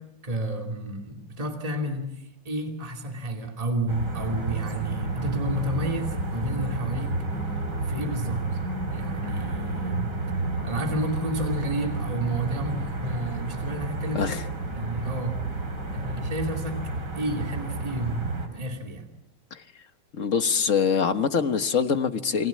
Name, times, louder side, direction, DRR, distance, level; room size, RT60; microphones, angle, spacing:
voice 1, 0.0-7.3 7.8-8.6 8.9-10.2 10.6-14.4 14.7-15.4 15.9-19.1, right 1 dB, 20° right, 2.7 m, -31 dB
sound 1, 3.9-18.5, right 2 dB, 75° right, 4.2 m, -31 dB
voice 2, 14.1-14.4 19.5-19.6 20.1-22.5, left 6 dB, 45° left, 1.6 m, -24 dB
30.0 x 21.5 x 8.5 m
omnidirectional pair, 1.9 m